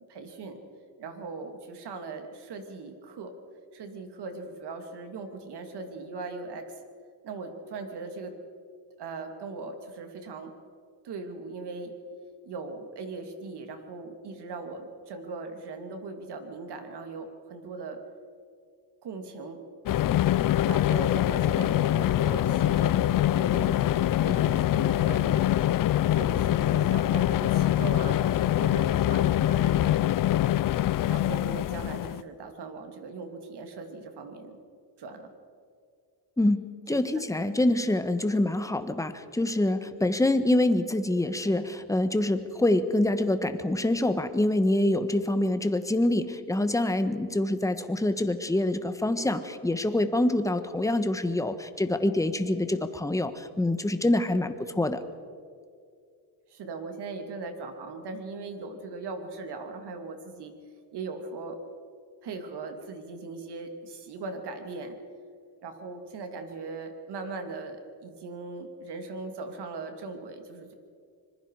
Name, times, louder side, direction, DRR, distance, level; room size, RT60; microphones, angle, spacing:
voice 1, 0.1-0.6 1.0-3.3 3.7-6.6 7.2-8.3 9.0-10.5 11.0-11.9 12.4-18.0 19.0-19.6 20.5-22.9 23.3-25.4 26.2-30.2 31.1-34.6 35.0-35.3 36.9-37.0 56.5-60.5 60.9-61.6 62.2-65.0 65.6-70.7, right 3 dB, 65° right, 5 dB, 2.9 m, -39 dB
sound 1, 19.9-32.2, left 13 dB, 50° left, 0.6 m, -24 dB
voice 2, 36.4-55.0, left 1 dB, 5° left, 9 dB, 1.3 m, -26 dB
25.5 x 21.0 x 4.9 m, 2.2 s
cardioid pair, 100°, 44 cm